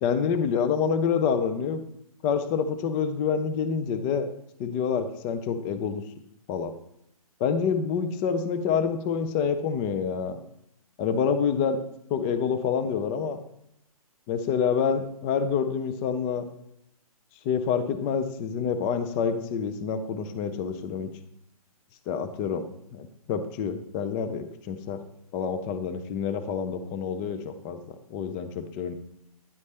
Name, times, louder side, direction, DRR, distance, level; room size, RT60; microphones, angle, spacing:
voice 1, 0.0-1.8 2.2-4.3 4.6-6.0 6.5-6.7 7.4-10.4 11.0-11.8 12.1-13.4 14.3-16.5 17.4-21.1 22.1-22.6 22.9-25.0 25.3-28.9, left 6 dB, 15° left, 9 dB, 0.3 m, -27 dB
9.9 x 4.1 x 3.3 m, 0.78 s
hypercardioid pair, 140°, 19 cm